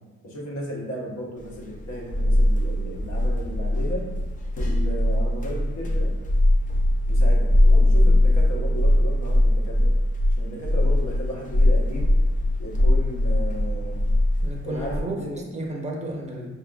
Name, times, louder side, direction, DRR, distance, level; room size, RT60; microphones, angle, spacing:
voice 1, 0.2-4.1 4.5-6.1 7.1-9.9 10.4-12.1 12.6-14.0 14.6-15.5, equal, 65° left, -2 dB, 1.0 m, -35 dB
sound 1, 1.5-15.0, left 1 dB, 25° left, 0.4 m, -20 dB
voice 2, 14.4-16.5, right 1 dB, 20° right, -1 dB, 0.7 m, -32 dB
5.0 x 2.3 x 2.2 m, 1.3 s
cardioid pair, 90°, 30 cm